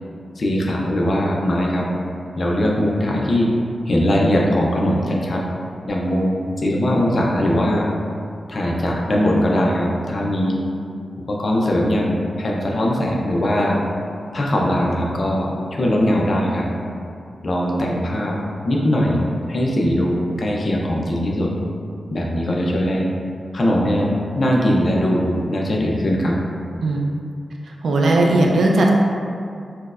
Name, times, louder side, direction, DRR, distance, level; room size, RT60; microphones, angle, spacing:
voice 1, 0.4-1.9 2.4-3.5 3.9-5.4 5.9-7.8 8.5-10.6 11.3-13.8 14.3-16.7 17.4-18.3 18.6-21.5 22.1-23.1 23.5-24.1 24.3-26.3, equal, 40° left, -3 dB, 0.4 m, -20 dB
voice 2, 27.8-28.9, right 2 dB, 70° right, -1 dB, 0.4 m, -17 dB
4.4 x 2.0 x 2.4 m, 2.4 s
wide cardioid pair, 180°, 0 cm